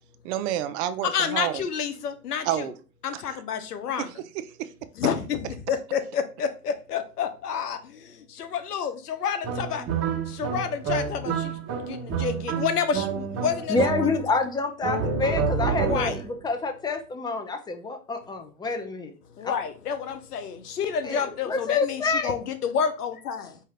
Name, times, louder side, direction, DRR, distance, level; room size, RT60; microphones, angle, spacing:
voice 1, 0.2-1.6 2.4-2.7 3.1-3.4 4.0-4.1 4.4-4.7, right 11 dB, 50° right, 0.5 m, -29 dB
voice 2, 1.0-2.7 3.0-4.1 5.0-9.9 10.2-14.4 15.7-16.2 19.4-23.6, left 7 dB, 90° left, 0.8 m, -29 dB
sound 1, 9.4-14.4 14.8-16.3, right 5 dB, 35° right, 1.0 m, -29 dB
voice 3, 13.7-19.1 19.4-19.5 21.0-21.2 21.5-22.4, left 4 dB, 10° left, 0.6 m, -27 dB
4.7 x 2.8 x 3.3 m
hypercardioid pair, 100°, 45 cm